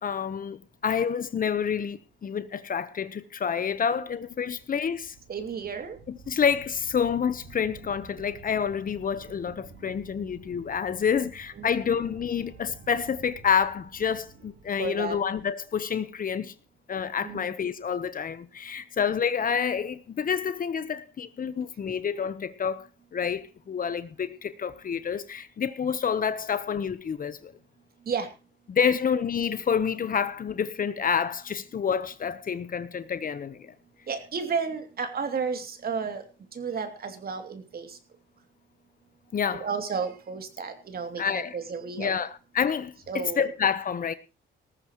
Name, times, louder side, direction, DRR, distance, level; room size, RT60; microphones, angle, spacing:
voice 1, 0.0-5.1 6.1-16.5 16.9-27.5 28.7-33.7 39.3-39.7 41.2-41.6 42.0-44.1, left 7 dB, 45° left, 1.1 m, -28 dB
sound 1, 4.0-16.0, right 5 dB, 85° right, 5.0 m, -51 dB
voice 2, 5.3-6.0 11.6-11.7 14.8-15.2 17.2-17.4 28.0-28.3 34.1-38.0 39.5-42.2 43.1-43.5, right 5 dB, 50° right, 2.9 m, -32 dB
19.0 x 14.5 x 3.1 m
cardioid pair, 90°, 20 cm